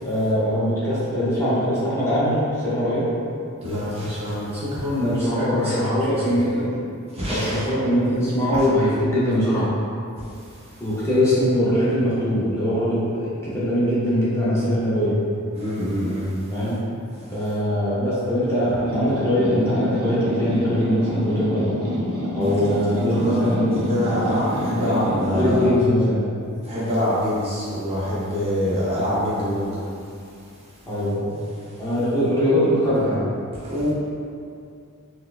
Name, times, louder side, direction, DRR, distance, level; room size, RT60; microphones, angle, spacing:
voice 1, 0.0-3.1 5.0-6.8 7.3-9.7 10.8-15.2 16.5-16.8 17.3-21.7 22.3-23.9 24.8-26.3 30.9-31.4 31.8-33.3, equal, 15° left, -10 dB, 0.7 m, -22 dB
voice 2, 3.6-6.4 7.1-7.8 8.5-8.6 10.3-10.8 15.5-16.3 22.5-22.6 23.1-25.6 26.6-29.8 31.7-31.9 33.6-33.9, equal, 30° right, -9 dB, 0.7 m, -26 dB
sound 1, 18.9-25.9, left 1 dB, 80° right, 0.7 m, -27 dB
4.3 x 2.1 x 2.4 m, 2.5 s
head